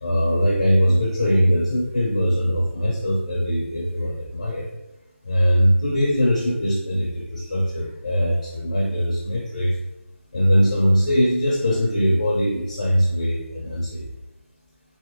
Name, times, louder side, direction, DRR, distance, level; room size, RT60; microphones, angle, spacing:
voice 1, 0.0-4.7 5.2-9.8 10.3-14.1, equal, 30° left, -4 dB, 0.5 m, -21 dB
3.4 x 2.7 x 3.4 m, 0.95 s
figure-of-eight pair, 175°, 8 cm